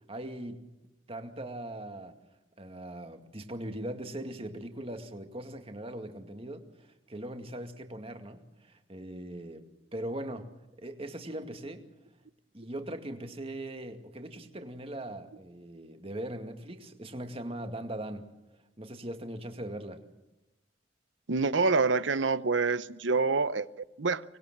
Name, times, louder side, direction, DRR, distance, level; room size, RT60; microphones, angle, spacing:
voice 1, 0.1-0.6 1.1-2.2 2.6-9.7 9.9-10.5 10.8-11.9 12.5-18.3 18.8-20.0, right 1 dB, 30° right, 2.2 m, -40 dB
voice 2, 21.3-24.2, right 4 dB, 75° right, 0.8 m, -27 dB
24.5 x 20.5 x 7.4 m
head